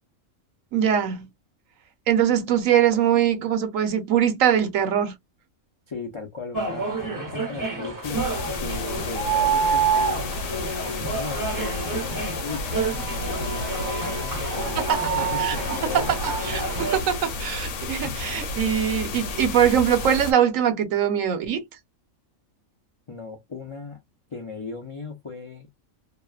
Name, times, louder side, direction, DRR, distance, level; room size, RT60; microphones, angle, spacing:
voice 1, 0.7-1.3 2.1-5.2 14.8-15.6 15.8-16.2 16.4-21.6, right 9 dB, 75° right, 1.1 m, -22 dB
voice 2, 5.9-8.3 8.6-10.4 10.9-16.2 18.0-18.2 23.1-24.0 24.3-25.7, left 4 dB, 50° left, 0.3 m, -37 dB
sound 1, 6.5-17.0, right 4 dB, 25° right, 0.4 m, -28 dB
sound 2, 8.0-20.3, left 3 dB, 75° left, 1.1 m, -32 dB
2.8 x 2.0 x 2.3 m
omnidirectional pair, 1.4 m